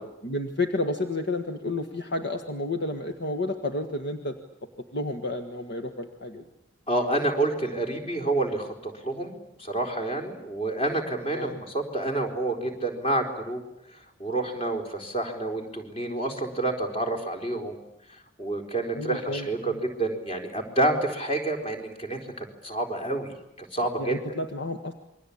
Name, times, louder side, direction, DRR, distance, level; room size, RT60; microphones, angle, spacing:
voice 1, 0.2-4.4 4.9-6.4 9.2-9.3 11.3-11.6 18.9-19.8 24.0-24.9, left 2 dB, 55° left, 6 dB, 1.6 m, -31 dB
voice 2, 6.9-9.3 9.6-13.6 14.2-17.8 18.4-19.7 20.0-24.2, right 2 dB, 30° left, 3 dB, 4.1 m, -28 dB
28.0 x 23.0 x 8.6 m, 0.87 s
head